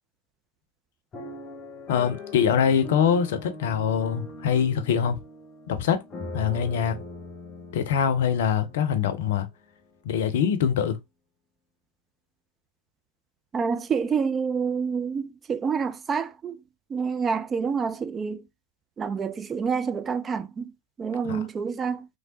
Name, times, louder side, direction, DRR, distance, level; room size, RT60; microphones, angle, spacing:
sound 1, 1.1-9.2 9.8-9.9 10.2-10.5, left 1 dB, 25° left, 0.9 m, -41 dB
voice 1, 1.9-5.2 5.7-6.0 6.3-7.0 7.7-9.5 10.0-11.0 21.2-21.5, left 8 dB, 55° left, 0.6 m, -24 dB
voice 2, 13.5-16.6 16.9-18.4 19.0-20.7 21.0-22.1, right 6 dB, 20° right, 0.4 m, -28 dB
3.3 x 3.3 x 2.7 m
figure-of-eight pair, 90°, 0 cm